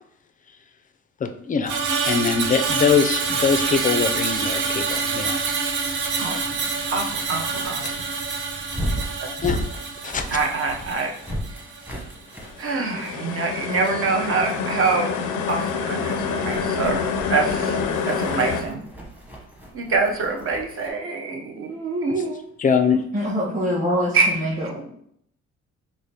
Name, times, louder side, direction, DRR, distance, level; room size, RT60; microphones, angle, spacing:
voice 1, 1.2-1.8 2.0-5.4 9.4-9.6 10.0-10.4 22.6-23.0, left 6 dB, 30° left, 6 dB, 0.4 m, -22 dB
Screech, 1.6-12.0 12.3-12.6, right 4 dB, 80° right, 0.6 m, -26 dB
voice 2, 6.9-8.0 10.3-11.1 12.6-15.1 15.5-17.8 18.1-18.8 19.7-22.5 24.1-24.3, right 4 dB, 45° right, 2 dB, 0.7 m, -25 dB
sound 1, 7.6-7.9 12.4-18.6, left 5 dB, 90° left, 0.5 m, -27 dB
sound 2, 8.6-13.3 13.7-14.0 14.5-15.0 15.5-20.9, equal, 5° right, 0.9 m, -35 dB
voice 3, 23.1-24.9, equal, 25° right, -6 dB, 1.3 m, -25 dB
4.8 x 2.1 x 2.8 m, 0.69 s
cardioid pair, 90°, 30 cm